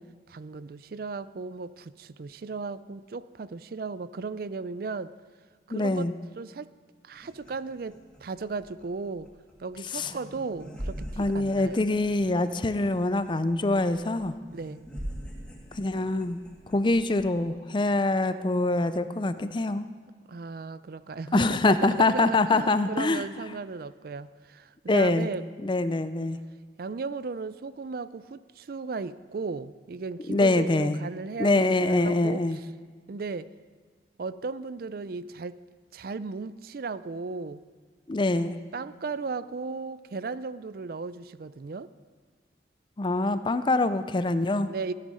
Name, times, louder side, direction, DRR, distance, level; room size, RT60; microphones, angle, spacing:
voice 1, 0.3-5.1 5.7-6.7 7.0-9.3 9.6-11.8 14.5-14.8 20.3-25.5 26.8-32.4 33.1-33.5 34.2-35.6 35.9-37.6 38.7-41.9 44.7-44.9, right 4 dB, 55° right, 15 dB, 0.4 m, -36 dB
voice 2, 5.7-6.1 9.9-10.1 11.2-14.4 15.8-16.4 16.7-19.8 21.3-23.2 24.9-25.3 25.6-26.4 30.3-31.0 31.4-32.6 38.1-38.6 43.0-44.7, left 2 dB, 25° left, 12 dB, 0.5 m, -24 dB
sound 1, 7.1-17.3, equal, 5° left, 2.3 m, -43 dB
16.0 x 9.9 x 5.5 m, 1.5 s
head